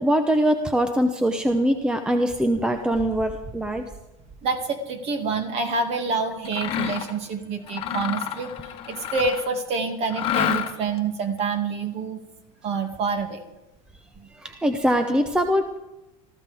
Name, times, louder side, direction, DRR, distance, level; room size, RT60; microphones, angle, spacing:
voice 1, 0.0-3.8 14.4-15.8, equal, 5° right, 7 dB, 0.7 m, -22 dB
voice 2, 4.4-12.2 12.6-13.4 14.2-14.3, right 4 dB, 40° right, 5 dB, 2.1 m, -27 dB
Mechanisms, 6.4-7.2 7.7-9.6 10.1-11.0, left 10 dB, 35° left, 1.3 m, -28 dB
22.0 x 14.5 x 3.5 m, 0.97 s
supercardioid pair, 150°, 17 cm